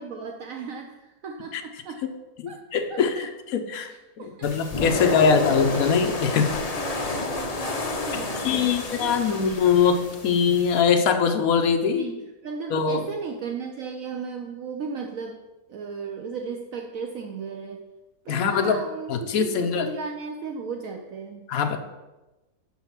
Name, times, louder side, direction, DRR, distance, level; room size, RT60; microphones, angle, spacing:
voice 1, 0.0-2.0 2.5-2.6 2.9-3.3 3.8-4.5 4.9-5.6 6.5-9.4 11.9-15.4 15.7-17.8 18.2-21.5, right 4 dB, 65° right, 3 dB, 1.0 m, -36 dB
voice 2, 2.4-6.6 8.1-12.1 12.7-13.1 18.3-18.8 19.1-19.9 21.5-21.8, left 6 dB, 65° left, 6 dB, 1.2 m, -22 dB
sound 1, 4.4-10.8, left 3 dB, 40° left, 0.5 m, -30 dB
6.4 x 5.7 x 6.0 m, 1.0 s
omnidirectional pair, 1.6 m